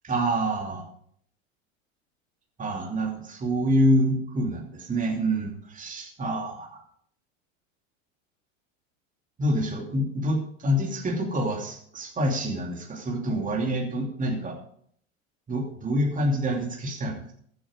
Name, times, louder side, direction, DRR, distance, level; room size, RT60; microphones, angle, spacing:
voice 1, 0.0-0.8 2.6-6.8 9.4-14.6 15.5-17.3, equal, 20° right, 0 dB, 2.8 m, -27 dB
14.5 x 7.8 x 4.9 m, 0.63 s
hypercardioid pair, 100°, 39 cm